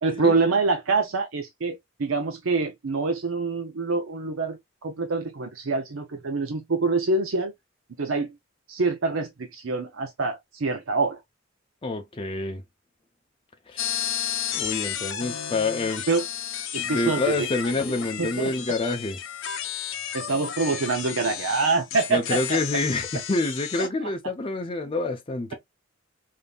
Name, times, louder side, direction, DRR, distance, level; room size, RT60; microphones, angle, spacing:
voice 1, 0.0-7.5 8.0-8.3 8.7-11.2 16.1-16.2 16.7-17.3 18.2-18.5 20.1-22.6 24.0-24.1, right 3 dB, 70° right, 0.7 m, -26 dB
voice 2, 11.8-12.6 13.7-13.9 14.5-16.1 16.8-19.2 22.1-25.5, left 2 dB, 25° left, 0.5 m, -27 dB
sound 1, 13.8-23.9, left 9 dB, 65° left, 0.7 m, -32 dB
5.1 x 2.7 x 2.3 m
head